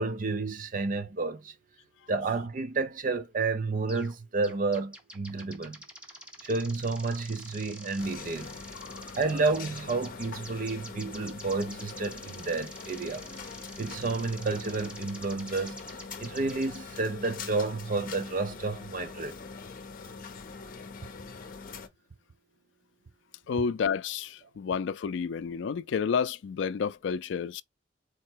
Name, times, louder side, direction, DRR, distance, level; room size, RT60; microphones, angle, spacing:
voice 1, 0.0-1.5 2.1-5.8 6.4-8.6 9.1-13.3 13.8-15.8 16.2-19.3, right 3 dB, 45° right, 0.6 m, -30 dB
sound 1, 3.9-4.2 4.4-16.8, equal, 5° right, 0.9 m, -48 dB
sound 2, 8.0-21.9, left 4 dB, 50° left, 0.7 m, -43 dB
voice 2, 8.8-9.1 23.5-27.6, left 6 dB, 70° left, 0.3 m, -30 dB
4.3 x 2.1 x 4.5 m
head